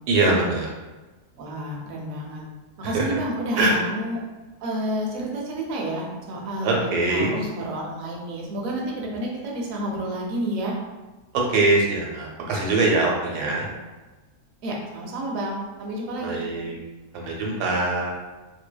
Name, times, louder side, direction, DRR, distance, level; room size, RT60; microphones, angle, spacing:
voice 1, 0.1-0.7 2.9-3.2 3.6-3.8 6.6-7.3 11.3-13.6 16.2-16.8 17.1-18.1, right 2 dB, 90° right, -2 dB, 1.1 m, -22 dB
voice 2, 1.4-2.4 2.8-4.2 4.6-10.7 14.6-16.4, right 1 dB, 70° right, -2 dB, 0.9 m, -30 dB
2.6 x 2.1 x 2.2 m, 1.2 s
omnidirectional pair, 1.7 m